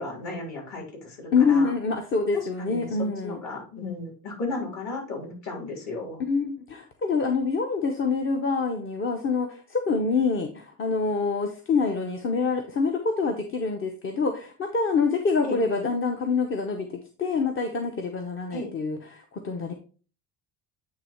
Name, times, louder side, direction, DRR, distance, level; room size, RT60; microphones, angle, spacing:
voice 1, 0.0-1.7 2.6-6.2 15.4-15.6 18.5-18.7, left 2 dB, 50° left, 0 dB, 3.4 m, -34 dB
voice 2, 1.3-3.4 6.2-16.9 17.2-19.7, left 4 dB, 35° left, 5 dB, 0.8 m, -26 dB
8.7 x 3.2 x 4.4 m, 0.39 s
cardioid pair, 125°, 36 cm